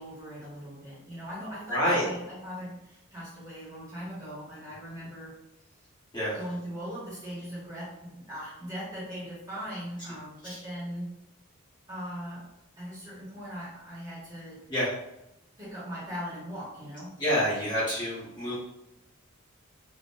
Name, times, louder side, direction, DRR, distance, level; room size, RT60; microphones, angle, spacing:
voice 1, 0.0-5.4 6.3-11.1 11.9-12.5 12.8-14.6 15.6-17.2, equal, 15° right, -9 dB, 1.5 m, -39 dB
voice 2, 1.7-2.0 6.1-6.4 14.7-14.9 17.2-18.5, equal, 20° left, -10 dB, 1.4 m, -27 dB
3.9 x 3.1 x 2.6 m, 0.87 s
head